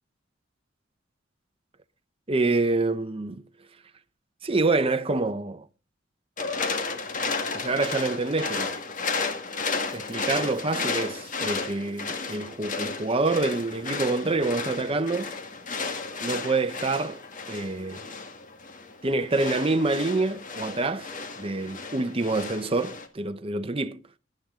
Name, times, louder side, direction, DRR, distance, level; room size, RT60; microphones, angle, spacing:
voice 1, 2.3-3.4 4.4-5.7 7.5-8.7 9.9-15.3 16.2-17.2 17.5-18.1 19.0-21.1 21.4-24.0, right 3 dB, 30° right, 0.8 m, -26 dB
sound 1, 6.4-23.1, left 4 dB, 45° left, 1.7 m, -33 dB
15.0 x 12.0 x 3.7 m
head